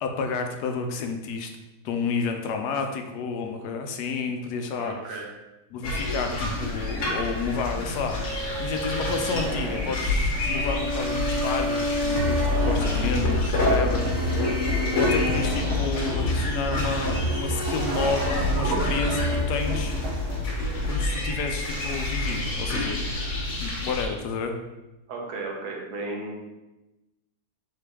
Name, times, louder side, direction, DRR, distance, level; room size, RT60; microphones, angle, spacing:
voice 1, 0.0-1.5 1.8-5.2 5.7-14.1 14.5-14.7 14.9-20.0 20.8-23.2 23.6-24.5, left 4 dB, 85° left, 5 dB, 1.2 m, -30 dB
voice 2, 4.8-5.3 14.3-14.4 25.1-26.5, right 3 dB, 75° right, -1 dB, 1.4 m, -35 dB
sound 1, 5.8-24.0, left 2 dB, 60° left, 1.3 m, -28 dB
sound 2, 8.0-16.5 17.1-19.4, equal, 25° right, 0.9 m, -31 dB
sound 3, 12.2-20.6, equal, 55° right, 0.9 m, -30 dB
3.8 x 3.7 x 3.4 m, 1.0 s
omnidirectional pair, 1.7 m